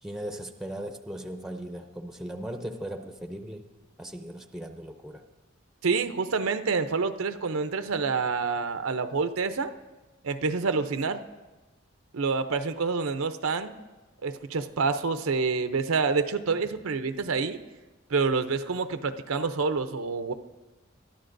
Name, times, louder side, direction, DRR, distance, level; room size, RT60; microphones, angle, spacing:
voice 1, 0.0-3.7 4.0-5.2, right 1 dB, ahead, 6 dB, 0.6 m, -38 dB
voice 2, 5.8-9.7 10.2-11.2 12.1-13.8 14.2-17.6 18.1-20.3, right 4 dB, 90° right, 9 dB, 0.6 m, -27 dB
22.0 x 13.0 x 2.6 m, 1.2 s
head